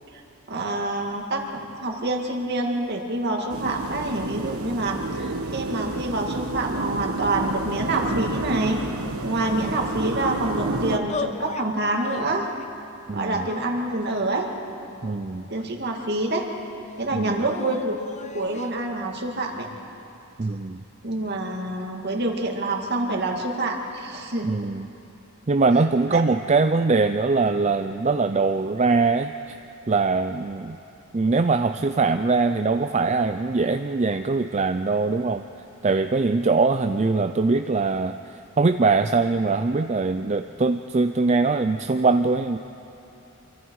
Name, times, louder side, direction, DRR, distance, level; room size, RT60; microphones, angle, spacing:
voice 1, 0.5-8.8 9.2-12.5 13.1-14.5 15.5-16.5 17.0-18.0 18.3-19.7 21.0-24.5 26.1-26.2, right 2 dB, 50° right, 2 dB, 2.3 m, -27 dB
sound 1, 3.5-11.0, right 2 dB, 75° right, 1.3 m, -30 dB
voice 2, 9.5-9.8 13.1-13.5 15.0-15.4 17.1-17.4 20.4-20.8 24.4-24.9 25.5-29.3 29.9-30.8 31.1-35.4 35.8-42.6, right 3 dB, 30° right, 8 dB, 0.4 m, -22 dB
sound 2, 11.1-11.7 12.0-12.7 13.3-14.3 15.0-16.0 17.4-18.7, left 4 dB, 30° left, 0.6 m, -37 dB
28.0 x 24.0 x 4.8 m, 2.8 s
head